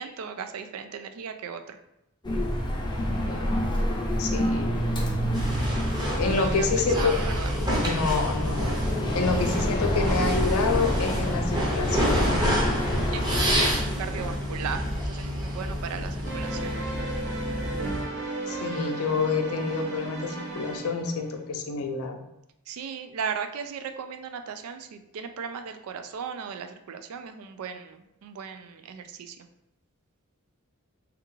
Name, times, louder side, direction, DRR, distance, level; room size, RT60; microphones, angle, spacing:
voice 1, 0.0-1.8 6.2-7.5 13.1-16.8 22.7-29.4, right 6 dB, 85° right, 8 dB, 0.3 m, -36 dB
sound 1, 2.2-13.7, equal, 20° left, 0.5 m, -28 dB
voice 2, 4.2-4.7 6.2-7.1 7.7-8.8 9.1-12.4 18.5-22.2, left 4 dB, 85° left, 5 dB, 0.5 m, -28 dB
sound 2, 5.3-18.0, equal, 20° right, 0.6 m, -29 dB
sound 3, 16.2-21.4, right 2 dB, 55° right, 0.7 m, -35 dB
3.4 x 2.3 x 3.0 m, 0.84 s
head